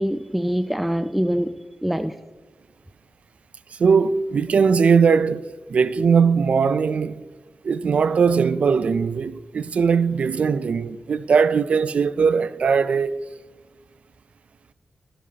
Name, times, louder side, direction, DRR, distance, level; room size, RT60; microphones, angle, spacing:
voice 1, 0.0-2.1, equal, 5° right, 0.4 m, -24 dB
voice 2, 3.7-7.2 7.6-13.2, right 5 dB, 70° right, 0.4 m, -20 dB
12.5 x 12.0 x 2.8 m
wide cardioid pair, 85°, 2 cm